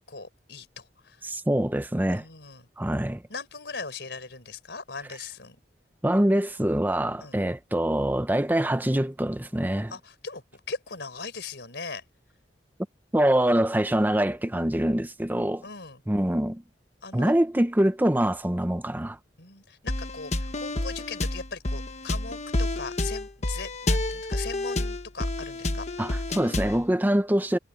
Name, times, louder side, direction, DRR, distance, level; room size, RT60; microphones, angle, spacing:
voice 1, 0.0-1.3 2.1-2.7 3.3-5.6 7.2-7.4 9.9-12.0 15.6-16.0 17.0-17.4 19.4-25.9, left 4 dB, 70° left, 4.8 m, -39 dB
voice 2, 1.2-2.2 2.8-3.2 6.0-9.9 13.1-15.6 16.1-16.6 17.1-19.2 26.0-27.6, right 1 dB, 10° right, 0.7 m, -24 dB
sound 1, 19.9-26.8, left 2 dB, 40° left, 1.3 m, -29 dB
head